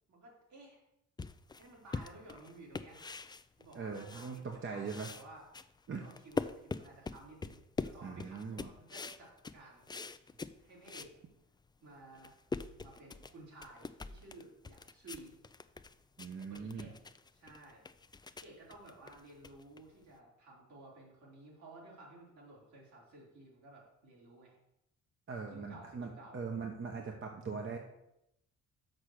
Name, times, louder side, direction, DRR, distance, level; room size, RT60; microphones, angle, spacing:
voice 1, 0.1-0.8 1.6-3.1 3.6-5.5 5.9-9.9 10.6-11.1 11.8-12.3 12.8-15.3 16.5-17.0 17.3-17.8 18.4-24.6 25.4-26.4, right 2 dB, 70° right, -4 dB, 3.7 m, -55 dB
sound 1, 1.2-4.6 4.8-11.2 11.6-11.7 12.0-20.2, left 4 dB, 15° left, 0.3 m, -43 dB
voice 2, 3.7-5.1 5.9-6.1 8.0-8.7 16.2-16.9 25.3-27.8, right 5 dB, 40° right, 2 dB, 1.0 m, -41 dB
6.5 x 5.9 x 6.5 m, 0.84 s
cardioid pair, 90°, 30 cm